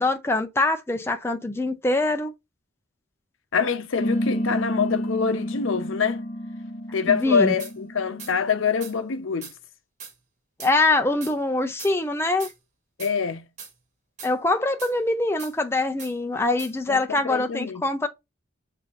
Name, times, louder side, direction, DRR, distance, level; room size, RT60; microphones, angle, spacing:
voice 1, 0.0-2.3 7.1-7.5 10.6-12.5 14.2-18.1, left 2 dB, 10° left, 0.4 m, -24 dB
voice 2, 3.5-6.2 6.9-9.5 13.0-13.5 16.9-17.8, left 6 dB, 90° left, 0.6 m, -25 dB
sound 1, 4.0-8.9, equal, 35° left, 0.8 m, -30 dB
sound 2, 7.6-7.7 8.2-8.3 8.8-8.9 9.4-9.6 10.0-10.1 10.6-10.7 11.2-11.3 11.8-11.9 12.4-12.6 13.0-13.1 13.6-13.7 14.2-14.3 14.8-14.9 15.4-15.5 16.0-16.1 16.6-16.7, right 5 dB, 35° right, 1.3 m, -40 dB
7.3 x 2.7 x 2.4 m
head